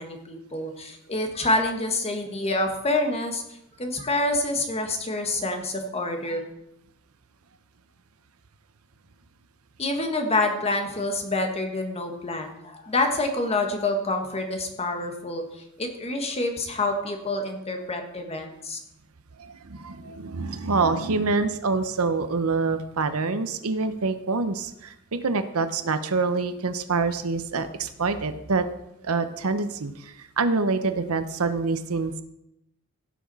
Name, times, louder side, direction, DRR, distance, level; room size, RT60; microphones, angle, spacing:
voice 1, 0.0-3.4 3.8-6.4 9.8-18.8, left 2 dB, 30° left, 4 dB, 1.4 m, -27 dB
voice 2, 19.4-28.7 29.0-32.1, right 4 dB, 80° right, 10 dB, 0.8 m, -26 dB
16.5 x 6.1 x 4.1 m, 0.83 s
head